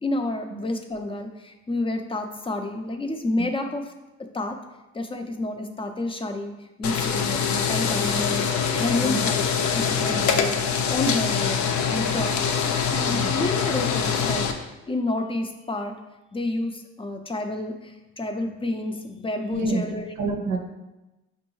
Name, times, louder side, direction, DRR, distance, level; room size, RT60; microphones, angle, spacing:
voice 1, 0.0-3.9 4.3-4.6 4.9-10.6 10.9-12.3 12.9-16.0 16.3-20.1, left 2 dB, 20° left, 5 dB, 0.4 m, -29 dB
sound 1, 6.8-14.5, left 6 dB, 70° left, 0.5 m, -24 dB
voice 2, 19.5-19.8 20.2-20.6, right 3 dB, 70° right, 3 dB, 0.6 m, -28 dB
5.3 x 2.6 x 3.1 m, 1.0 s
cardioid pair, 90°, 30 cm